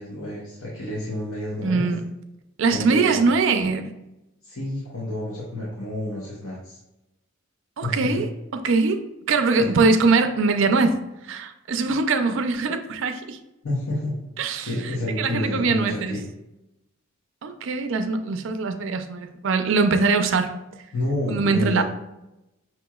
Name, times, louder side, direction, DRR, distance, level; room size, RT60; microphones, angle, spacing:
voice 1, 0.0-1.9 2.7-3.3 4.4-6.8 7.8-8.3 9.6-9.8 13.6-14.1 14.6-16.2 20.9-21.8, left 1 dB, 70° left, -6 dB, 0.9 m, -29 dB
voice 2, 1.6-2.1 2.6-3.9 7.8-11.0 11.2-13.4 14.4-16.2 17.4-20.5 21.3-21.8, right 4 dB, 60° right, 8 dB, 0.4 m, -22 dB
5.9 x 2.9 x 2.3 m, 0.93 s
head